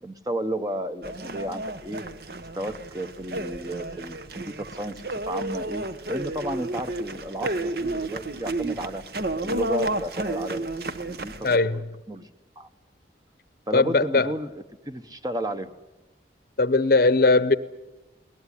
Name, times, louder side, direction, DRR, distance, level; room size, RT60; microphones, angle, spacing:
voice 1, 0.0-2.0 2.5-9.0 9.4-12.3 12.6-12.7 13.7-15.7, right 1 dB, 20° right, 1.0 m, -33 dB
sound 1, 1.0-11.6, right 2 dB, 55° right, 1.1 m, -32 dB
voice 2, 11.4-11.8 13.7-14.3 16.6-17.6, left 3 dB, 50° left, 0.8 m, -19 dB
21.5 x 19.0 x 9.9 m
head